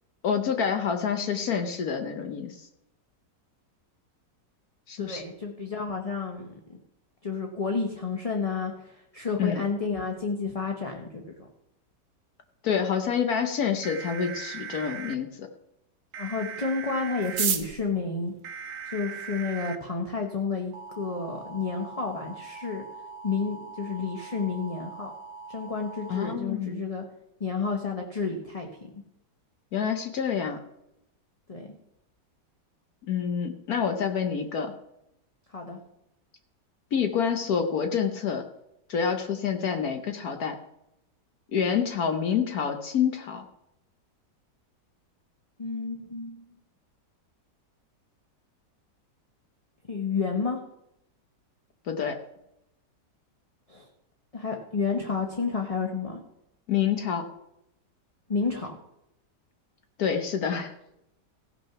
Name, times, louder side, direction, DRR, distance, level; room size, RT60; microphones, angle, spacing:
voice 1, 0.2-2.7 4.9-5.2 9.4-9.6 12.6-15.5 26.1-26.8 29.7-30.6 33.1-34.7 36.9-38.4 38.9-40.6 41.5-43.4 51.9-52.2 56.7-57.3 60.0-60.7, left 7 dB, 65° left, 6 dB, 1.3 m, -27 dB
voice 2, 5.0-6.5 7.2-11.2 16.2-18.3 18.9-22.8 23.2-25.1 25.5-27.0 27.4-28.7 28.9-29.0 31.5-31.7 35.5-35.8 45.6-46.4 49.9-50.6 53.7-53.9 54.3-56.2 58.3-58.8, left 4 dB, 25° left, 2 dB, 0.8 m, -30 dB
sound 1, 13.8-15.2 16.1-17.5 18.4-19.8 20.7-26.3, right 6 dB, 65° right, 1.1 m, -41 dB
sound 2, 17.2-19.5 20.3-20.4 20.6-20.7 20.9-21.4 21.7-21.8 22.0-22.4 22.8-23.0 23.3-23.6, right 8 dB, 85° right, 1.6 m, -32 dB
15.5 x 6.1 x 5.8 m, 0.84 s
omnidirectional pair, 1.9 m